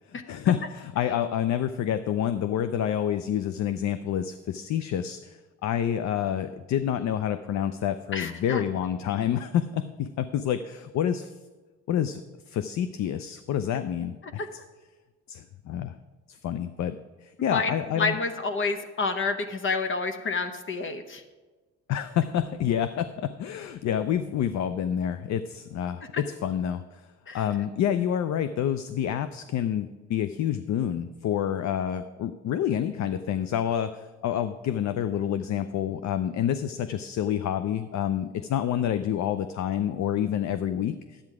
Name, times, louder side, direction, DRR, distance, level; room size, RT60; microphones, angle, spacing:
voice 1, 0.1-11.3 11.9-12.2 12.5-14.4 15.3-15.9 16.3-18.1 21.9-27.0 27.3-41.2, left 9 dB, 65° left, 11 dB, 0.5 m, -28 dB
voice 2, 8.1-8.6 14.4-14.5 17.5-21.2 27.3-27.4, left 4 dB, 40° left, 7 dB, 0.9 m, -29 dB
10.5 x 8.8 x 4.8 m, 1.3 s
cardioid pair, 90°, 30 cm